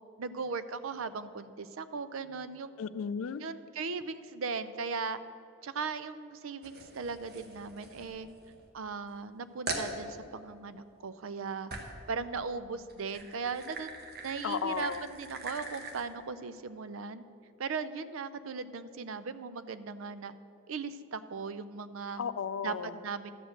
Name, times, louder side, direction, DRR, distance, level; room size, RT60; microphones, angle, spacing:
voice 1, 0.2-2.7 3.4-5.2 5.6-8.3 8.7-11.7 12.1-13.9 14.2-17.2 17.6-20.3 20.7-22.2 22.6-22.8 23.0-23.3, right 5 dB, 80° right, 13 dB, 0.5 m, -38 dB
voice 2, 2.8-3.4 14.4-15.0 22.2-22.9, left 6 dB, 80° left, 14 dB, 0.4 m, -34 dB
sound 1, 6.6-8.7 9.1-9.2 9.7-9.9 11.7-12.1 12.8-16.1, right 3 dB, 50° right, 1.2 m, -42 dB
12.5 x 5.1 x 7.6 m, 2.6 s
head